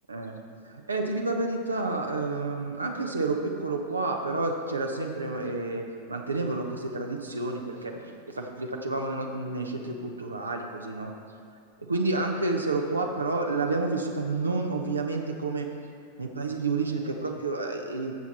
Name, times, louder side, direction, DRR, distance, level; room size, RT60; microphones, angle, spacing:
voice 1, 0.1-11.1 11.9-15.7 16.2-18.1, right 3 dB, 80° right, 2 dB, 0.8 m, -30 dB
12.0 x 7.2 x 4.1 m, 2.3 s
figure-of-eight pair, 90°, 0 cm